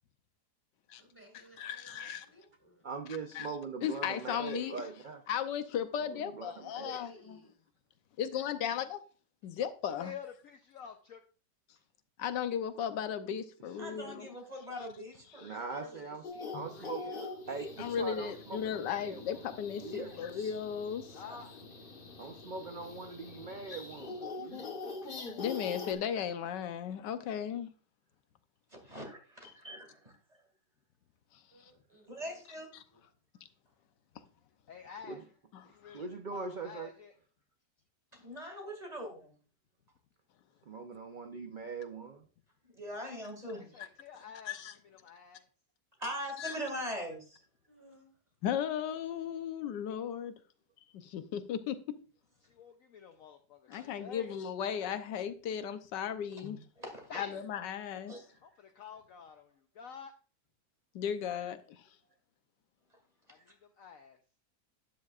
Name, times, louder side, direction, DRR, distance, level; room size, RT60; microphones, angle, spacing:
voice 1, 0.9-2.9 6.9-7.5 15.6-17.4 31.5-32.4 32.9-33.0 47.7-48.2, right 1 dB, 10° left, 4.2 m, -58 dB
voice 2, 1.6-2.2 3.3-3.5 3.8-4.8 5.3-7.4 8.2-9.0 9.4-10.1 12.2-14.3 15.3-15.5 16.5-16.7 17.8-21.2 25.4-27.7 31.6-31.7 32.7-32.8 43.8-43.9 44.5-44.7 46.4-46.6 48.4-50.3 50.9-52.0 53.7-56.6 57.2-58.1 60.9-61.8, left 8 dB, 90° left, 1.4 m, -36 dB
voice 3, 2.8-5.2 6.0-7.0 13.8-14.3 15.4-16.2 16.5-17.1 17.5-19.4 19.8-20.1 22.2-24.7 35.1-35.2 35.9-36.9 40.7-42.2, right 4 dB, 50° right, 0.6 m, -42 dB
voice 4, 9.8-11.2 21.1-21.5 25.1-25.5 34.7-35.2 35.6-37.1 43.5-44.6 44.8-45.5 52.4-54.3 57.1-57.4 58.4-60.1 63.3-64.2, left 6 dB, 60° left, 1.0 m, -49 dB
voice 5, 13.8-15.8 17.5-17.7 19.9-20.5 21.1-21.4 28.7-30.4 32.1-32.7 38.1-39.3 42.7-43.9 46.0-47.4 53.7-53.9 56.8-57.1 58.1-58.2 63.3-63.4, equal, 25° right, 2.2 m, -42 dB
sound 1, 16.2-25.9, left 4 dB, 35° left, 1.3 m, -44 dB
12.0 x 9.4 x 2.4 m
omnidirectional pair, 1.8 m